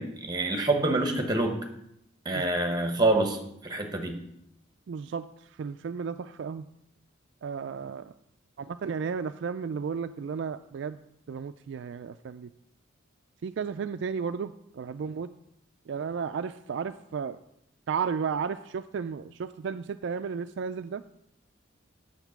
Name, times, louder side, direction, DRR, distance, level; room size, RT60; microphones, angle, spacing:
voice 1, 0.0-1.6 2.2-3.4 3.6-4.2, right 2 dB, 20° right, 4 dB, 1.2 m, -26 dB
voice 2, 4.9-5.3 5.6-6.6 7.4-8.1 8.6-11.0 11.3-12.5 13.4-15.3 15.9-17.4 17.9-21.0, right 6 dB, 65° right, 10 dB, 0.3 m, -33 dB
8.1 x 7.2 x 5.9 m, 0.77 s
head